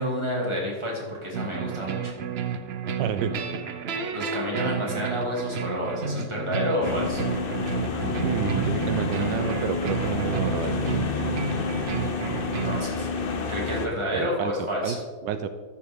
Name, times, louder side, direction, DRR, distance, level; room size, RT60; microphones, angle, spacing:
voice 1, 0.0-2.1 4.1-7.2 12.6-13.1 13.5-15.0, equal, 15° right, -3 dB, 2.4 m, -29 dB
sound 1, 1.3-12.8, right 6 dB, 70° right, 0.5 m, -31 dB
voice 2, 3.0-3.4 8.2-10.9 14.1-14.5 14.8-15.0 15.2-15.5, right 8 dB, 90° right, 10 dB, 1.3 m, -29 dB
sound 2, 6.8-13.9, left 4 dB, 45° left, 0.7 m, -29 dB
13.5 x 7.5 x 3.6 m, 1.4 s
omnidirectional pair, 1.9 m